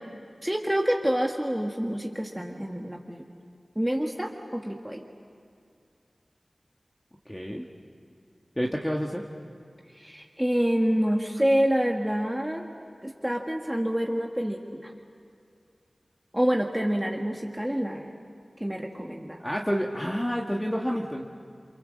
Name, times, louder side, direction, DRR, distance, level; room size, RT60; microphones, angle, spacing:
voice 1, 0.4-3.3 3.8-5.0 9.9-12.7 13.0-14.9 16.3-18.1 18.6-19.4, equal, 10° right, 1 dB, 1.7 m, -27 dB
voice 2, 7.3-7.7 8.6-9.2 19.4-21.2, equal, 10° left, 0 dB, 1.6 m, -29 dB
28.5 x 24.5 x 7.6 m, 2.4 s
wide cardioid pair, 40°, 0 cm